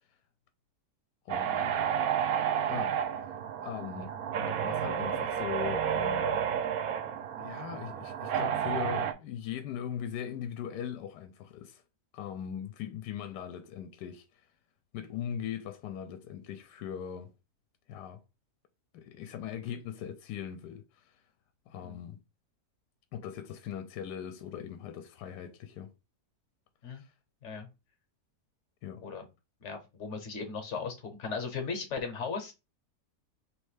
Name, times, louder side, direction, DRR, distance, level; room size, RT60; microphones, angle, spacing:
voice 1, 1.2-1.8 2.7-3.0 3.6-4.1 4.4-6.3 7.4-11.8 12.1-14.5 14.9-17.3 17.9-18.2 18.9-21.2 21.7-22.2 23.1-25.9 26.9-27.1 28.8-29.1, left 9 dB, 80° left, 1.1 m, -40 dB
sound 1, 1.3-9.1, right 8 dB, 70° right, 0.9 m, -31 dB
voice 2, 29.6-32.5, left 5 dB, 50° left, 1.1 m, -37 dB
3.3 x 3.1 x 4.8 m
omnidirectional pair, 1.7 m